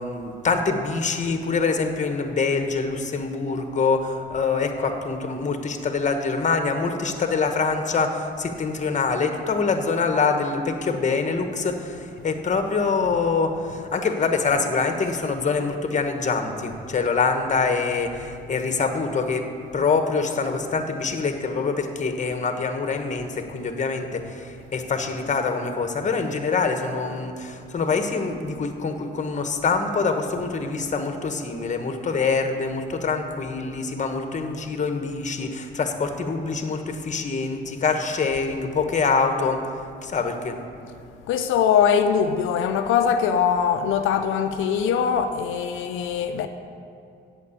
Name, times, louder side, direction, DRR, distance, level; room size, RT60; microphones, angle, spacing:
voice 1, 0.0-19.5 19.7-39.6 40.0-40.6, left 4 dB, 35° left, 1.2 m, -25 dB
voice 2, 41.3-46.5, left 7 dB, 85° left, 0.5 m, -22 dB
8.4 x 7.4 x 8.3 m
cardioid pair, 90°, 20 cm